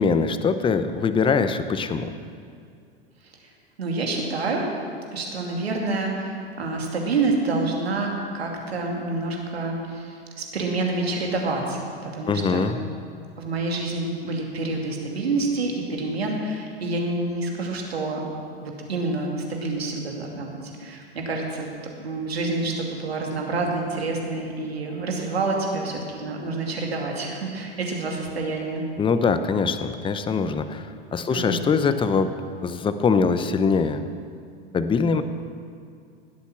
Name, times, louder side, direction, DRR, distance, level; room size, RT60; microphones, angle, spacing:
voice 1, 0.0-2.1 12.3-12.8 29.0-32.3 32.6-34.0 34.7-35.2, left 5 dB, 15° left, 11 dB, 0.8 m, -23 dB
voice 2, 3.8-4.7 5.1-12.7 13.4-18.3 18.6-21.7 22.0-28.8 31.3-31.6, right 3 dB, 85° right, 0 dB, 2.6 m, -28 dB
19.5 x 8.3 x 6.1 m, 2.4 s
hypercardioid pair, 95°, 30 cm